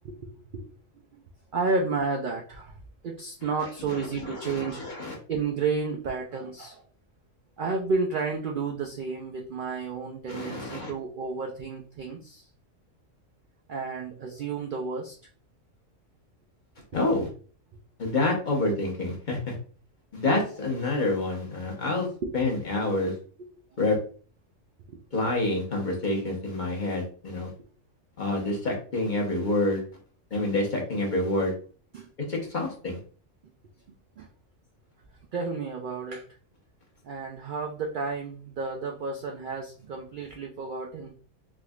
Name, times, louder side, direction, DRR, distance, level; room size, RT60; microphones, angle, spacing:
voice 1, 0.0-0.7 1.1-1.2 1.5-2.7 3.0-4.8 5.3-6.8 7.6-12.4 13.7-15.2 17.2-17.3 22.2-22.4 24.9-25.0 31.9-32.1 34.2-34.3 35.3-36.2 37.0-41.1, right 4 dB, 75° right, 1 dB, 0.4 m, -31 dB
voice 2, 3.9-5.2 10.3-10.9 16.9-17.3 18.0-19.6 20.1-22.1 22.3-23.1 23.8-24.0 25.1-27.5 28.2-29.8 30.3-31.5 32.3-33.0, left 2 dB, 40° left, -1 dB, 0.9 m, -27 dB
3.5 x 3.0 x 2.3 m, 0.42 s
omnidirectional pair, 1.4 m